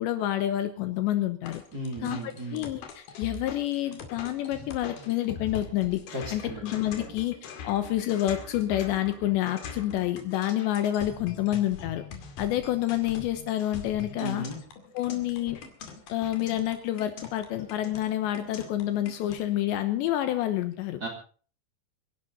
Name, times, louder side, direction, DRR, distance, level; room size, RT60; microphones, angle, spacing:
voice 1, 0.0-1.6 2.0-7.3 7.6-12.0 12.4-14.5 14.9-15.6 16.1-21.0, left 13 dB, 75° left, 10 dB, 3.0 m, -28 dB
sound 1, 1.4-19.4, left 5 dB, 55° left, 3.6 m, -43 dB
voice 2, 1.7-2.7 6.1-6.6 7.0-7.1 14.2-14.6 21.0-21.1, right 1 dB, 20° right, 1 dB, 3.3 m, -35 dB
27.5 x 11.0 x 4.2 m, 0.41 s
omnidirectional pair, 5.6 m